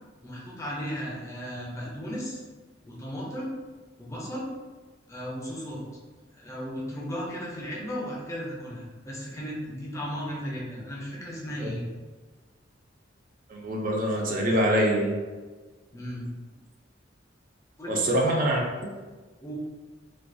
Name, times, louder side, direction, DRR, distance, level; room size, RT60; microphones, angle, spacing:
voice 1, 0.2-2.4 2.8-3.5 4.0-4.5 5.1-5.8 6.4-11.8 15.9-16.3 17.8-18.3 19.4-19.5, equal, 15° left, -5 dB, 0.5 m, -35 dB
voice 2, 13.5-15.2 17.9-18.6, right 1 dB, 45° right, -1 dB, 0.3 m, -24 dB
2.3 x 2.2 x 2.5 m, 1.3 s
head